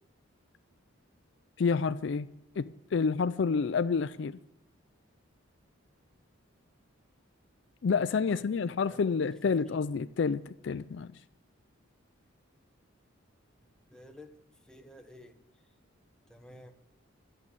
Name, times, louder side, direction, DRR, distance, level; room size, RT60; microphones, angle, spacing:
voice 1, 1.6-2.3 2.6-4.4 7.8-11.1, left 5 dB, 60° left, 0.4 m, -29 dB
voice 2, 8.3-9.2 9.5-9.7 13.9-15.4 16.3-16.8, left 1 dB, 5° left, 1.0 m, -53 dB
11.0 x 8.4 x 9.5 m
head